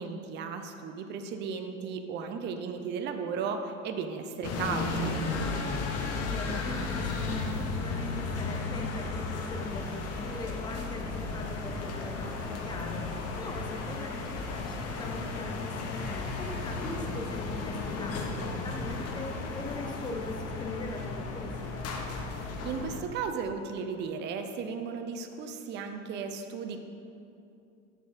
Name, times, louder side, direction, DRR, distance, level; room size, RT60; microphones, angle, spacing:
voice 1, 0.0-5.2 22.3-26.8, right 5 dB, 25° right, 6 dB, 0.5 m, -35 dB
sound 1, 4.4-23.0, left 3 dB, 40° left, 0.9 m, -34 dB
voice 2, 6.1-21.8, left 2 dB, 10° left, 3 dB, 0.7 m, -41 dB
6.9 x 6.2 x 3.5 m, 2.5 s
figure-of-eight pair, 80°, 40 cm